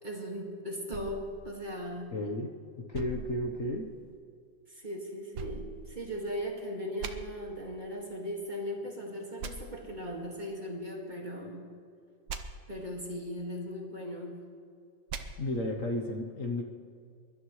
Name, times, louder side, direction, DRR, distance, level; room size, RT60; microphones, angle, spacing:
voice 1, 0.0-2.1 4.7-11.7 12.7-14.4, equal, 25° right, -2 dB, 2.0 m, -38 dB
sound 1, 0.9-2.3 2.9-4.2 5.3-6.5 7.0-7.1 9.4-9.5 12.3-12.4 15.1-15.2, right 6 dB, 80° right, 1.6 m, -42 dB
voice 2, 2.1-2.5 2.8-3.9 15.4-16.6, left 1 dB, 50° left, 1 dB, 1.3 m, -33 dB
23.5 x 12.0 x 3.2 m, 2.3 s
omnidirectional pair, 2.0 m